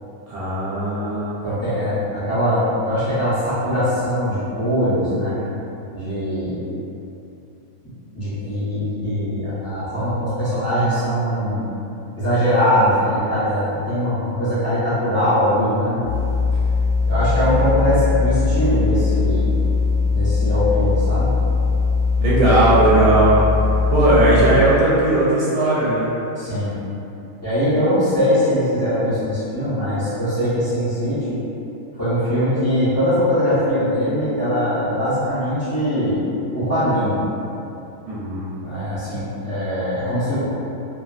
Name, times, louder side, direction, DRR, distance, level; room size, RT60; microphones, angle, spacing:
voice 1, 0.3-1.4 22.2-23.4 23.9-26.1 38.0-38.5, right 2 dB, 75° right, -8 dB, 1.1 m, -17 dB
voice 2, 1.4-5.4 5.9-6.6 8.1-11.7 12.2-16.0 17.0-19.5 20.1-21.3 26.4-26.7 27.4-31.4 31.9-36.2 36.5-37.2 38.6-40.4, equal, 15° left, -15 dB, 0.6 m, -21 dB
sound 1, 16.0-24.7, left 4 dB, 45° right, 0.9 m, -20 dB
2.8 x 2.1 x 2.4 m, 2.9 s
omnidirectional pair, 1.6 m